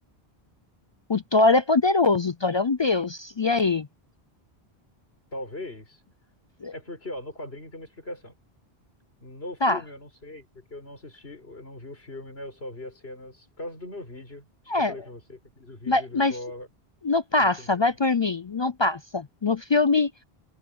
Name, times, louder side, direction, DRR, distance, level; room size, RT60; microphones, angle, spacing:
voice 1, 1.1-3.9 6.6-6.7 9.6-9.8 14.7-14.9 15.9-16.4 17.0-20.1, left 3 dB, 45° left, 0.3 m, -23 dB
voice 2, 5.3-6.0 6.7-8.4 9.2-14.5 14.8-16.7 17.4-18.0, left 1 dB, 75° left, 5.6 m, -40 dB
omnidirectional pair, 1.0 m